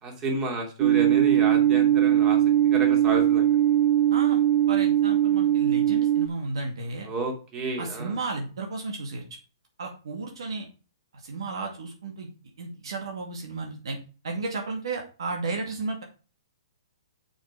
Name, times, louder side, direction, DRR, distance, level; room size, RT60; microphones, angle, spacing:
voice 1, 0.0-2.4 2.7-3.5 7.1-8.1, right 2 dB, 25° right, 2 dB, 3.0 m, -31 dB
sound 1, 0.8-6.3, right 11 dB, 55° right, 0.6 m, -20 dB
voice 2, 4.1-4.4 4.7-7.1 7.8-9.2 9.8-10.7 11.1-12.3 12.6-14.0 14.2-16.0, right 3 dB, 75° right, 2 dB, 2.3 m, -33 dB
6.7 x 6.3 x 4.9 m, 0.35 s
hypercardioid pair, 145°, 3 cm